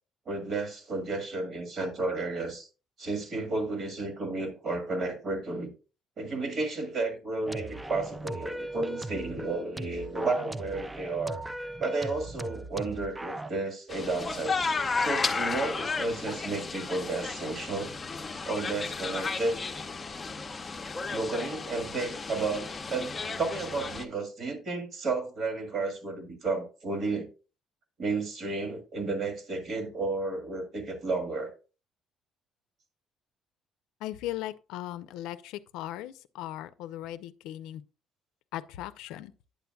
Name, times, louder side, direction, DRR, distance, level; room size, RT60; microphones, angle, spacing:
voice 1, 0.3-2.7 3.0-5.7 6.2-11.4 11.8-14.6 15.0-17.9 18.5-19.6 21.1-27.3 28.0-31.5, right 3 dB, 50° right, 1.7 m, -32 dB
sound 1, 7.5-13.5, right 2 dB, 10° right, 0.4 m, -38 dB
sound 2, 13.9-24.0, left 4 dB, 25° left, 0.7 m, -33 dB
voice 2, 34.0-37.8 38.5-39.3, left 14 dB, 90° left, 0.4 m, -38 dB
9.0 x 7.0 x 2.3 m
cardioid pair, 105°, 0 cm